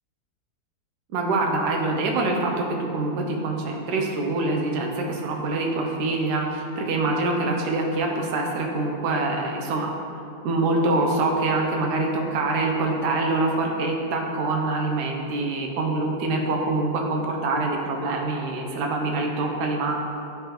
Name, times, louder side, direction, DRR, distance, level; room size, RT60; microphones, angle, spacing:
voice 1, 1.1-2.7 2.9-9.9 10.4-19.9, right 2 dB, 85° right, 1 dB, 1.2 m, -25 dB
9.8 x 3.4 x 2.9 m, 2.6 s
omnidirectional pair, 1.7 m